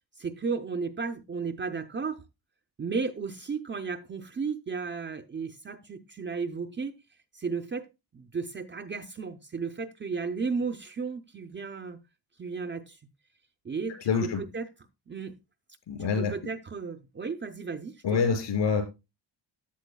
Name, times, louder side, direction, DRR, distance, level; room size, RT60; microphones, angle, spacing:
voice 1, 0.2-2.2 2.8-6.9 7.3-7.9 8.1-12.0 12.4-13.0 13.6-14.6 15.1-15.4 16.0-18.2, right 5 dB, 25° right, 0.6 m, -34 dB
voice 2, 14.0-14.4 15.9-16.3 18.0-18.8, left 5 dB, 70° left, 6.4 m, -26 dB
14.5 x 10.5 x 2.2 m
wide cardioid pair, 160°, 46 cm